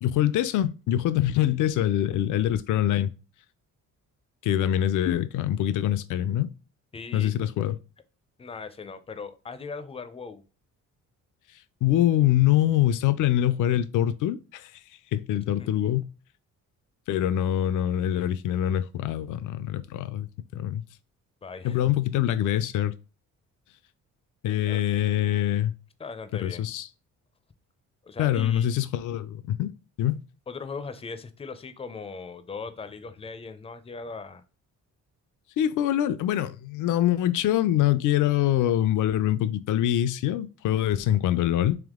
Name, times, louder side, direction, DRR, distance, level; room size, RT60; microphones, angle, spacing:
voice 1, 0.0-3.1 4.4-6.5 7.1-7.8 11.8-14.7 15.1-16.1 17.1-20.3 20.5-20.8 21.6-22.9 24.4-25.7 26.4-26.9 28.2-29.7 30.0-30.2 35.6-41.8, left 12 dB, 75° left, 0.4 m, -24 dB
voice 2, 6.9-7.3 8.4-10.4 15.6-15.9 21.4-21.8 24.7-24.8 26.0-26.7 28.0-28.7 30.5-34.4, left 4 dB, 20° left, 0.4 m, -39 dB
3.6 x 2.9 x 3.6 m
cardioid pair, 100°, 32 cm